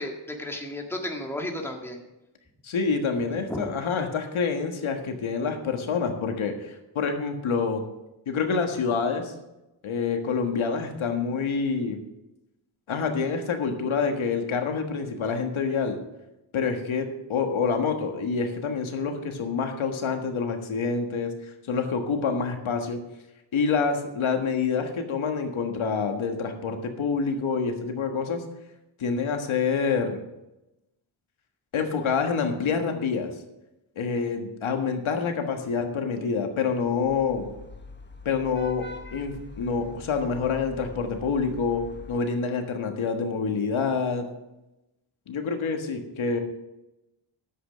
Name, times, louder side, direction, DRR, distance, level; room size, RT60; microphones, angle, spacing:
voice 1, 0.0-2.0 3.3-3.7, left 1 dB, 5° left, 2 dB, 1.7 m, -33 dB
voice 2, 2.6-7.8 8.3-9.3 9.8-12.0 12.9-16.0 16.5-21.3 21.7-23.0 23.5-28.4 29.0-30.2 31.7-33.3 34.0-37.5 38.2-38.8 39.1-44.3 45.3-46.4, left 5 dB, 75° left, 5 dB, 1.6 m, -27 dB
Vehicle horn car horn honking / Traffic noise roadway noise, 36.9-42.2, left 2 dB, 20° left, 1.2 m, -43 dB
10.0 x 7.9 x 6.2 m, 0.95 s
cardioid pair, 95°, 49 cm